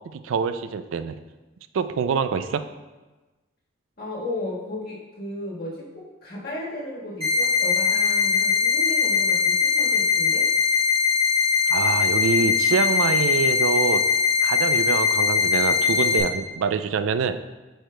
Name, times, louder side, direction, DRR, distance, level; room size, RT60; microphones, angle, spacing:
voice 1, 0.1-1.1 1.7-2.6 11.7-14.0 14.4-17.4, right 5 dB, 85° right, 11 dB, 0.4 m, -25 dB
voice 2, 4.0-10.4, left 1 dB, 50° left, -5 dB, 1.5 m, -34 dB
sound 1, 7.2-16.2, left 6 dB, 30° right, 1.6 m, -21 dB
8.8 x 4.8 x 2.2 m, 1.2 s
head